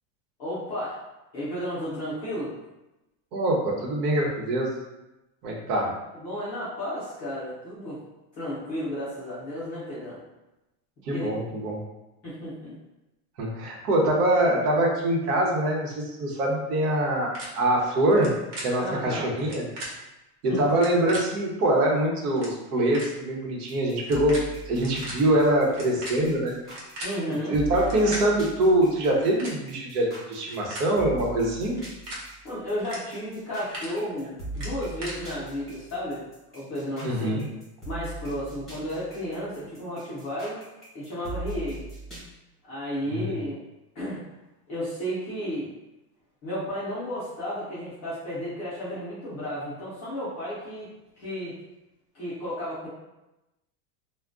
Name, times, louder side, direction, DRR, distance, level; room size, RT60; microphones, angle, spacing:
voice 1, 0.4-1.0 1.3-2.5 6.1-8.0 8.3-10.2 11.1-11.3 12.2-12.8 18.8-19.2 20.5-20.7 27.0-27.6 32.4-36.2 36.5-37.4 37.8-40.6 40.9-41.8 42.7-43.6 43.9-44.2 44.7-45.7 46.4-50.9 51.2-51.5 52.1-52.9, equal, 20° left, -11 dB, 0.3 m, -33 dB
voice 2, 3.3-4.7 5.4-5.9 11.0-11.8 13.4-18.3 18.6-19.7 20.4-26.6 27.5-31.8 37.0-37.5 43.1-43.3, right 1 dB, 85° right, -1 dB, 1.0 m, -24 dB
sound 1, 17.3-17.5 18.1-18.3 18.5-18.7 19.4-19.9 20.7-21.2 22.0-22.1 22.3-22.5 22.9-23.1 24.0-24.4 24.7-25.1 25.7-27.1 27.8-28.2 29.1-29.5 30.3-30.9 31.7-32.2 32.8-33.0 33.3-33.9 34.5-35.1, right 1 dB, 40° right, 0.8 m, -37 dB
sound 2, 23.7-42.2, right 1 dB, ahead, 1.0 m, -40 dB
2.4 x 2.1 x 3.6 m, 0.98 s
supercardioid pair, 175°, 44 cm